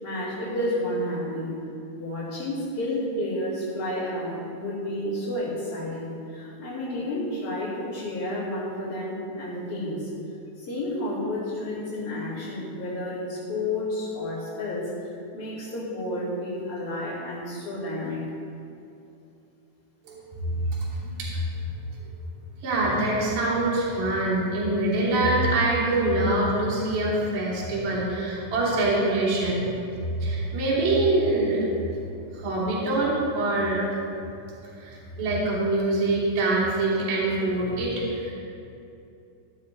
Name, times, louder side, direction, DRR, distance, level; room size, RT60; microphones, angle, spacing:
voice 1, 0.0-1.5 1.9-10.1 10.6-18.2, left 1 dB, 40° left, -13 dB, 3.0 m, -31 dB
voice 2, 20.0-21.4 22.6-29.8 30.2-31.6 32.3-33.9 34.7-38.3, right 2 dB, 55° right, -9 dB, 4.5 m, -24 dB
14.0 x 11.5 x 3.2 m, 2.7 s
omnidirectional pair, 4.7 m